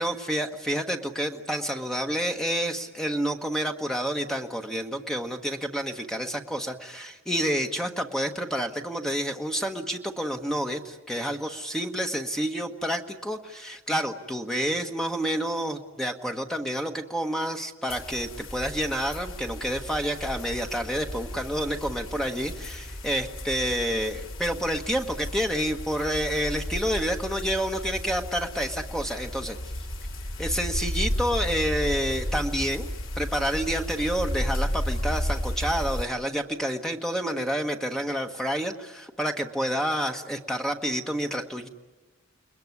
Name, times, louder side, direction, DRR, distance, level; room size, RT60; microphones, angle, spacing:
voice 1, 0.0-29.6 30.4-32.9 33.2-41.7, equal, 5° left, 4 dB, 1.2 m, -29 dB
sound 1, 17.9-36.0, equal, 75° left, 2.0 m, -33 dB
29.5 x 21.0 x 9.6 m, 1.2 s
head